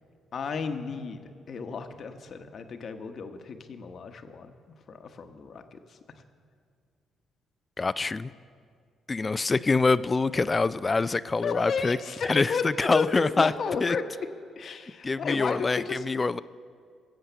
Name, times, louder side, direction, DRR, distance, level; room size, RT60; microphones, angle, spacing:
voice 1, 0.3-4.5 4.9-6.0 11.4-14.0 14.6-16.0, left 5 dB, 55° left, 1.0 m, -33 dB
voice 2, 7.8-8.3 9.1-12.0 12.2-13.5 13.8-14.0 15.0-16.4, left 3 dB, 25° left, 0.4 m, -25 dB
18.0 x 7.8 x 6.8 m
cardioid pair, 90°, 0 cm